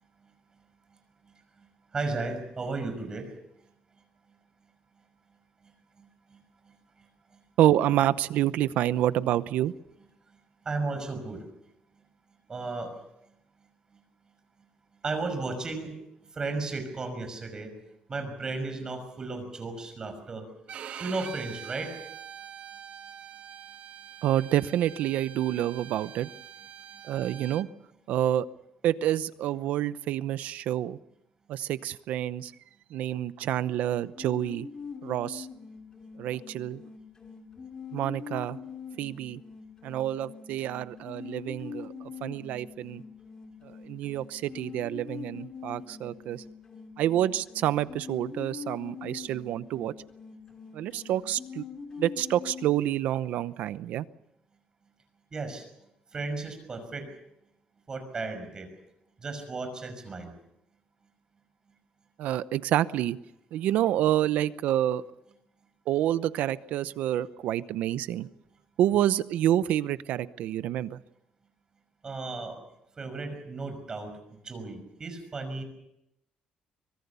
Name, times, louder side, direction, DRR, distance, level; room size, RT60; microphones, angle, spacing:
voice 1, 1.9-3.3 6.0-6.4 10.6-11.4 12.5-13.0 15.0-15.9 16.3-17.7 18.1-20.5 21.0-21.9 55.3-55.6 56.1-57.1 57.9-58.7 59.2-60.3 72.0-72.6 73.0-74.1 74.4-75.6, right 3 dB, 30° right, 8 dB, 5.8 m, -34 dB
voice 2, 7.6-9.7 24.2-26.3 27.1-27.7 28.1-28.5 28.8-31.0 31.5-32.5 32.9-34.7 35.0-35.5 36.2-36.8 37.9-38.6 39.0-39.4 39.8-41.9 42.2-43.0 43.9-46.4 47.0-49.9 50.7-51.6 52.0-54.0 62.2-63.2 63.5-65.0 65.9-68.3 68.8-71.0, right 12 dB, 85° right, 15 dB, 0.8 m, -28 dB
Bowed string instrument, 20.7-27.6, right 9 dB, 60° right, 1.4 m, -44 dB
sound 1, 34.1-52.7, left 6 dB, 30° left, 2.6 m, -44 dB
24.5 x 22.5 x 7.0 m, 0.82 s
cardioid pair, 135°, 3 cm